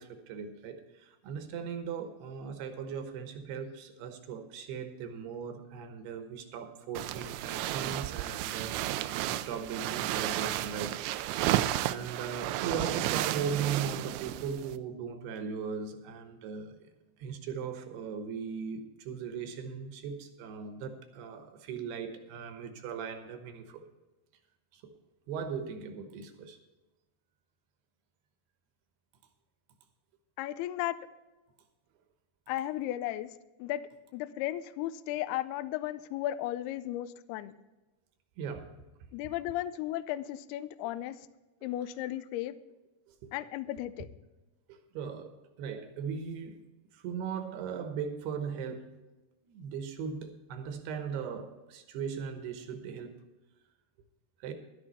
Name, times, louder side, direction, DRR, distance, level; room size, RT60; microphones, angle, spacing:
voice 1, 0.0-11.0 11.3-16.8 17.2-23.8 24.7-24.9 25.3-26.6 38.4-38.8 43.1-43.3 44.7-46.7 46.9-49.0 49.4-53.2 54.4-54.5, right 6 dB, 70° right, 7 dB, 2.9 m, -38 dB
sound 1, 7.0-14.8, right 15 dB, 90° right, 3.0 m, -32 dB
voice 2, 30.4-31.0 32.5-33.3 33.6-33.8 34.1-37.6 39.1-41.2 41.6-42.6 43.3-44.1, left 14 dB, 85° left, 13 dB, 2.3 m, -35 dB
12.0 x 11.5 x 4.2 m, 1.1 s
omnidirectional pair, 5.2 m